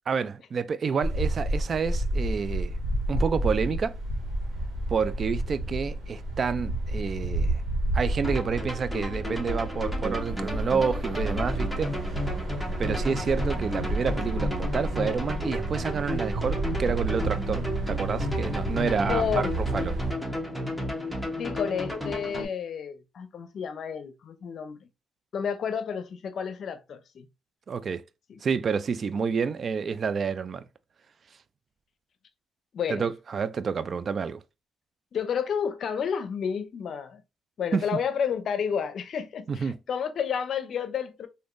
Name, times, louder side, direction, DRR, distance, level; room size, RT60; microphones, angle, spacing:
voice 1, 0.1-2.8 3.1-3.9 4.9-7.6 7.9-12.2 12.8-20.0 27.7-28.0 28.4-30.6 32.9-34.4 37.7-37.9 39.5-39.8, right 6 dB, 45° right, 0.3 m, -29 dB
sound 1, 1.0-20.1, right 1 dB, 90° right, 1.5 m, -30 dB
sound 2, 8.2-22.4, left 1 dB, 5° right, 0.9 m, -33 dB
voice 2, 19.1-19.5 21.4-24.9 25.3-27.3 28.3-28.4 32.7-33.0 35.1-37.2 37.6-41.3, left 7 dB, 60° left, 0.6 m, -30 dB
3.5 x 2.6 x 2.5 m
cardioid pair, 90°, 0 cm